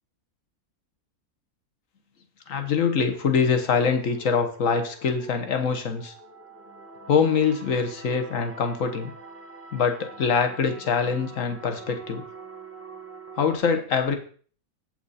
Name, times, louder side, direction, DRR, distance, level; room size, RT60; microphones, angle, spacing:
voice 1, 2.5-6.1 7.1-9.1 9.7-12.2 13.3-14.2, left 6 dB, 60° left, 6 dB, 1.6 m, -24 dB
sound 1, 3.0-13.6, right 3 dB, 10° right, 1.0 m, -45 dB
7.9 x 7.9 x 4.2 m, 0.44 s
omnidirectional pair, 1.6 m